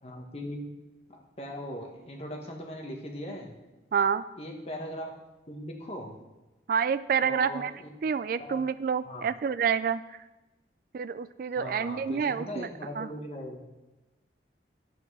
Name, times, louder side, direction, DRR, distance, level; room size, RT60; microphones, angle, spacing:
voice 1, 0.0-0.7 1.1-3.6 4.4-5.1 5.5-6.1 7.2-7.9 8.4-8.6 9.0-9.3 11.6-13.6, equal, 35° left, 1 dB, 1.5 m, -39 dB
voice 2, 3.9-4.3 6.7-7.7 8.0-10.2 10.9-12.7 13.0-13.1, right 6 dB, 50° right, 16 dB, 0.3 m, -28 dB
10.5 x 8.0 x 4.9 m, 1.1 s
head